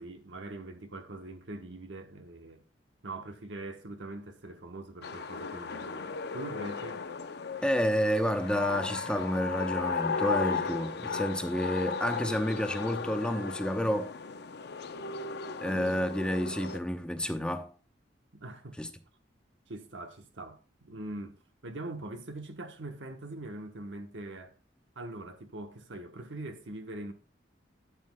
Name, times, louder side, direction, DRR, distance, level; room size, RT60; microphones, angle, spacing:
voice 1, 0.0-2.6 3.0-7.1 18.3-18.8 19.7-21.4 21.6-24.5 25.0-27.1, right 2 dB, 75° right, 1.0 m, -42 dB
sound 1, 5.0-16.8, left 5 dB, 60° left, 0.7 m, -36 dB
voice 2, 7.6-14.1 15.6-17.7 18.8-18.9, equal, 5° left, 0.8 m, -30 dB
11.0 x 8.2 x 2.2 m
head